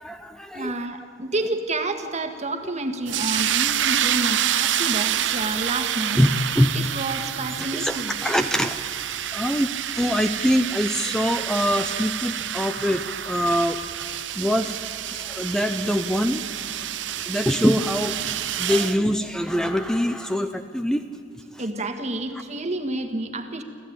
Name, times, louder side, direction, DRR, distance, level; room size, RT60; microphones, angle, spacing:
voice 1, 0.0-0.9 6.1-6.3 6.5-6.8 7.7-8.8 9.3-13.8 14.4-14.8 15.1-16.4 17.3-21.0 21.5-21.6, equal, 5° left, 8 dB, 0.6 m, -24 dB
voice 2, 0.5-6.2 6.7-8.1 21.6-23.6, right 2 dB, 40° right, 6 dB, 1.7 m, -29 dB
sound 1, 3.1-19.0, right 11 dB, 80° right, 0.7 m, -28 dB
26.0 x 15.0 x 8.8 m, 2.5 s
head